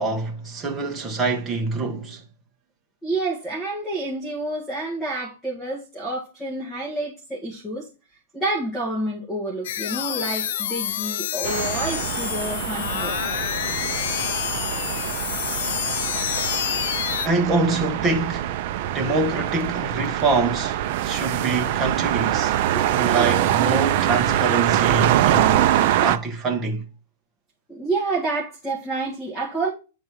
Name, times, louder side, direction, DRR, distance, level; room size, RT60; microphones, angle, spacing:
voice 1, 0.0-2.2 17.2-22.6 22.9-25.8 26.0-26.9, right 3 dB, 10° right, 1.0 m, -25 dB
voice 2, 3.0-7.9 8.3-13.1 22.7-23.3 27.7-29.7, right 2 dB, 5° left, 1.8 m, -29 dB
sound 1, 9.6-17.3, left 11 dB, 55° left, 0.4 m, -28 dB
sound 2, 11.4-26.2, right 12 dB, 40° right, 0.5 m, -24 dB
9.3 x 3.9 x 4.5 m
supercardioid pair, 175°, 0 cm